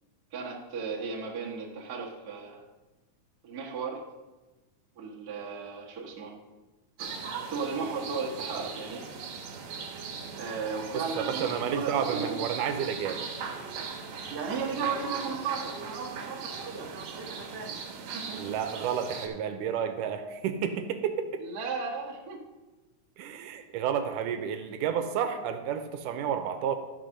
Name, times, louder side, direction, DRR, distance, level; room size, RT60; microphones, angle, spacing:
voice 1, 0.3-2.6 3.4-4.1 5.0-6.3 7.0-7.1 7.5-9.0 10.4-12.4 14.3-17.8 18.1-18.5 21.4-22.4, right 5 dB, 40° right, -3 dB, 1.5 m, -35 dB
sound 1, 7.0-19.3, right 5 dB, 65° right, 2.5 m, -39 dB
voice 2, 10.9-13.3 18.4-21.4 23.2-26.8, right 8 dB, 80° right, 7 dB, 2.2 m, -31 dB
12.5 x 4.6 x 6.4 m, 1.2 s
omnidirectional pair, 3.7 m